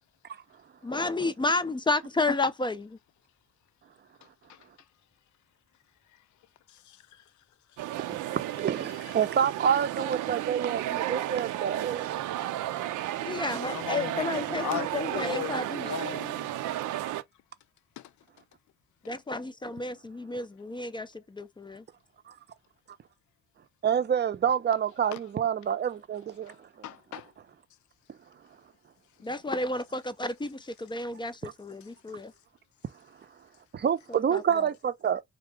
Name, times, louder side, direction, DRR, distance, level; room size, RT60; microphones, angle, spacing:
voice 1, 0.8-3.0 13.2-15.9 19.1-21.8 29.2-32.3 34.1-34.7, left 2 dB, 15° left, 0.4 m, -31 dB
voice 2, 6.7-7.2 13.7-16.5 18.0-18.1 19.0-19.2 25.1-25.2 26.5-26.6 26.8-27.3, left 13 dB, 75° left, 0.6 m, -38 dB
sound 1, 7.8-17.2, right 14 dB, 85° right, 0.6 m, -33 dB
voice 3, 8.1-12.2 15.9-16.0 17.1-17.2 23.8-26.9 31.4-31.5 33.7-35.2, right 8 dB, 35° right, 0.6 m, -28 dB
3.6 x 2.7 x 3.3 m
cardioid pair, 90°, 30 cm